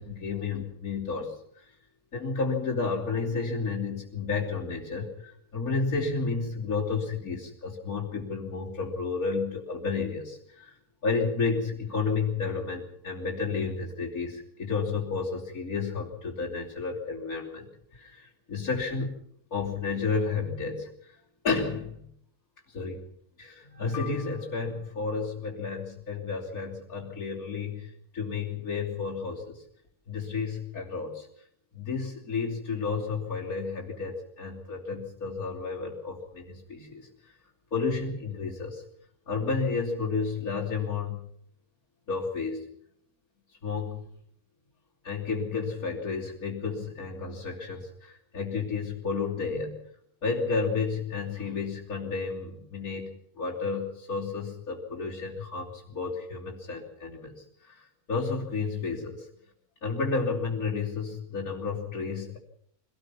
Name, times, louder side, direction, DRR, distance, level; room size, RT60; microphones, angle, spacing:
voice 1, 0.0-1.6 2.1-10.7 11.0-17.7 18.0-19.2 19.5-21.1 21.4-22.0 22.7-23.0 23.4-29.6 30.1-31.3 31.7-37.1 37.7-38.8 39.3-41.2 42.1-42.6 43.6-44.0 45.0-49.8 50.2-53.1 53.4-57.8 58.1-59.3 59.8-62.4, left 4 dB, 70° left, -7 dB, 3.6 m, -31 dB
25.0 x 18.5 x 6.0 m, 0.69 s
omnidirectional pair, 1.6 m